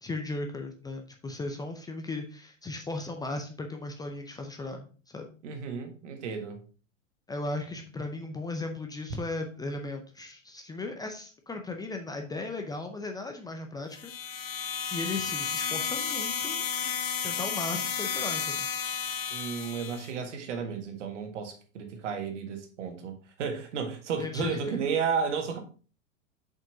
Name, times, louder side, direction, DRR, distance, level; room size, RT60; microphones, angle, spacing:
voice 1, 0.0-5.3 7.3-14.1 14.5-16.9 17.2-18.7 24.2-24.8, left 2 dB, 10° left, 0.6 m, -37 dB
voice 2, 5.4-6.6 19.3-25.6, right 6 dB, 65° right, 1.6 m, -33 dB
sound 1, 13.9-20.1, left 7 dB, 35° left, 1.2 m, -32 dB
7.1 x 5.4 x 2.7 m
figure-of-eight pair, 95°, 39 cm